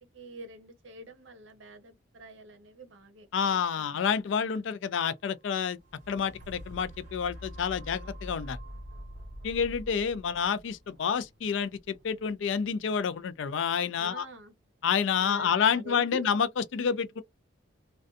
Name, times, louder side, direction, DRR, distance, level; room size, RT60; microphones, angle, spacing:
voice 1, 0.1-3.9 14.0-14.5 15.2-16.3, right 2 dB, 65° right, 0.7 m, -46 dB
voice 2, 3.3-5.8 6.1-8.6 9.4-14.3 14.8-17.2, left 7 dB, 65° left, 0.3 m, -29 dB
sound 1, 5.7-13.7 14.2-14.3, equal, 40° right, 1.0 m, -46 dB
2.5 x 2.2 x 2.4 m
head